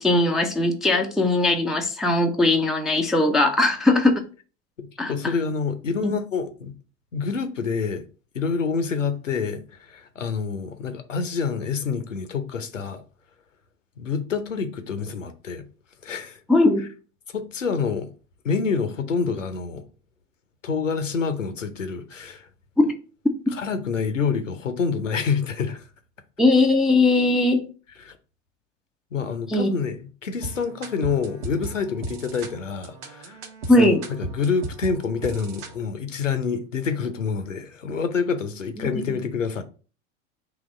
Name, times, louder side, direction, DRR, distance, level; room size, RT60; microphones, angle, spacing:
voice 1, 0.0-4.2 5.0-5.1 6.0-6.1 16.5-16.8 22.8-22.9 26.4-27.6 29.5-29.7 33.7-34.0, left 2 dB, ahead, 0.3 m, -19 dB
voice 2, 4.8-6.7 7.1-8.0 8.3-13.0 14.0-15.7 16.0-16.4 17.3-18.1 18.4-19.9 20.6-22.5 23.5-25.8 28.0-28.2 29.1-33.4 33.8-39.6, left 5 dB, 85° left, 0.7 m, -27 dB
sound 1, 30.4-35.8, right 2 dB, 50° right, 0.9 m, -37 dB
4.0 x 2.9 x 4.0 m
figure-of-eight pair, 85°, 37 cm